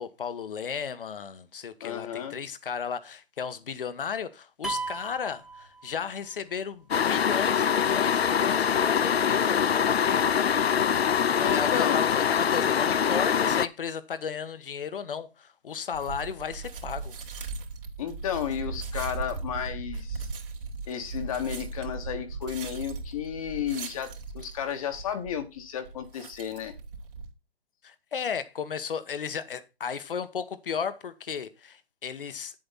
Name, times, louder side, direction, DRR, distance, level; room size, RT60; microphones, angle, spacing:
voice 1, 0.0-10.2 11.3-17.1 27.8-32.6, left 7 dB, 60° left, 1.3 m, -34 dB
voice 2, 1.8-2.4 11.4-12.0 18.0-20.3 20.9-26.7, left 9 dB, 35° left, 1.3 m, -33 dB
sound 1, 4.6-6.3, right 3 dB, ahead, 1.1 m, -36 dB
sound 2, 6.9-13.7, left 7 dB, 80° left, 0.6 m, -24 dB
sound 3, 15.9-27.3, right 4 dB, 60° right, 2.9 m, -38 dB
9.1 x 7.9 x 4.1 m
hypercardioid pair, 145°, 30 cm